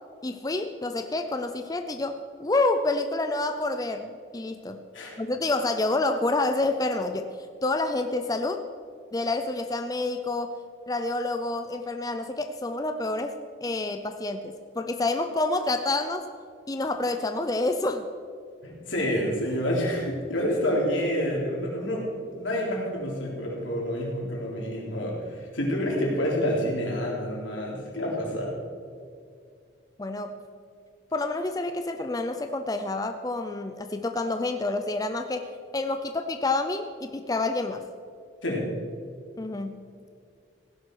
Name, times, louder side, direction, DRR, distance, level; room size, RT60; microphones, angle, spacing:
voice 1, 0.2-4.8 5.2-8.6 9.1-10.6 10.9-16.3 16.7-18.0 30.0-30.4 31.1-35.5 35.7-37.8 39.4-39.9, left 2 dB, 20° left, 7 dB, 0.5 m, -28 dB
voice 2, 18.6-28.5 38.4-38.7, equal, 85° left, -2 dB, 3.5 m, -28 dB
16.0 x 11.0 x 4.7 m, 2.3 s
head